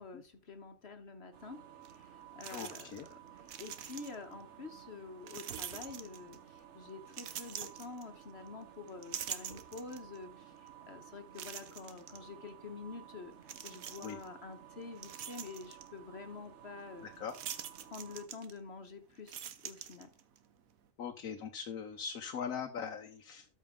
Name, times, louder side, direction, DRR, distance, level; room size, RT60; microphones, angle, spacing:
voice 1, 0.0-1.6 1.9-2.9 3.3-13.3 13.6-17.1 17.8-20.1, left 4 dB, 50° left, 7 dB, 1.3 m, -48 dB
sound 1, 1.3-18.3, right 10 dB, 60° right, 1.3 m, -55 dB
sound 2, 1.8-1.9 2.4-3.1 3.4-4.3 5.3-6.5 7.1-8.5 8.9-10.2 10.7-10.8 11.4-12.2 13.4-14.3 14.7-15.9 17.3-18.8 19.1-20.4, right 9 dB, 90° right, 1.3 m, -45 dB
voice 2, 2.5-3.1 14.0-14.2 17.0-17.3 21.0-23.5, left 7 dB, 85° left, 4 dB, 1.3 m, -41 dB
13.0 x 5.2 x 3.7 m, 0.32 s
omnidirectional pair, 1.4 m